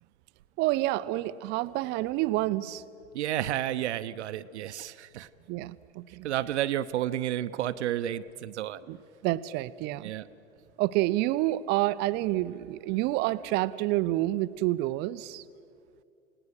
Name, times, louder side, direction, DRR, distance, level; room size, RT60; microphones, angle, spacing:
voice 1, 0.6-2.8 5.5-6.3 8.9-9.0 9.2-10.1 10.8-15.4, right 17 dB, 25° right, 16 dB, 0.5 m, -28 dB
voice 2, 3.1-5.3 6.2-8.8 10.0-10.3, right 12 dB, 55° right, 13 dB, 0.8 m, -31 dB
29.0 x 18.0 x 6.6 m, 2.6 s
figure-of-eight pair, 95°, 41 cm